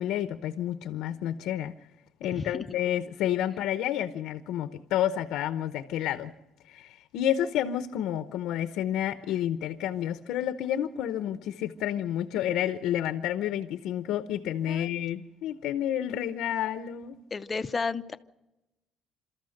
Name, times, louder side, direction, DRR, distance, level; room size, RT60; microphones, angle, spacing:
voice 1, 0.0-1.7 2.2-6.3 6.7-17.2, left 11 dB, 90° left, 0.8 m, -30 dB
voice 2, 2.3-2.6 14.7-14.9 17.3-18.2, left 4 dB, 20° left, 0.7 m, -32 dB
29.0 x 13.5 x 6.5 m
cardioid pair, 160°, 0 cm